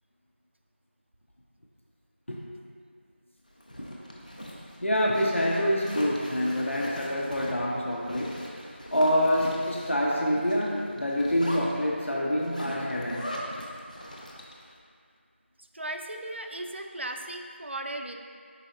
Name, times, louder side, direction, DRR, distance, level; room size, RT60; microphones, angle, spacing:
Zipper (clothing), 3.5-14.7, equal, 40° left, 0.5 m, -41 dB
voice 1, 4.8-8.4 8.9-13.3, equal, 80° left, -3 dB, 0.7 m, -26 dB
voice 2, 15.6-18.1, right 1 dB, 65° right, 4 dB, 0.4 m, -36 dB
4.7 x 4.0 x 2.6 m, 2.2 s
figure-of-eight pair, 175°, 7 cm